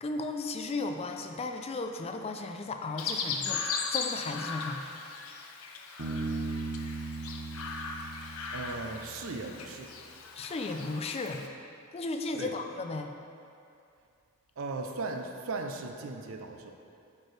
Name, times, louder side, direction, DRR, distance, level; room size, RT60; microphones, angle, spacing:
voice 1, 0.0-4.8 10.3-11.4 11.9-13.1, left 3 dB, 30° left, 5 dB, 0.3 m, -35 dB
Chirp tweet, 3.0-11.5, left 5 dB, 80° left, 0.6 m, -38 dB
Bass guitar, 6.0-9.5, right 3 dB, 85° right, 1.0 m, -37 dB
voice 2, 8.5-9.9 12.4-12.6 14.6-16.7, right 3 dB, 70° right, 4 dB, 0.5 m, -37 dB
9.0 x 4.6 x 3.2 m, 2.5 s
head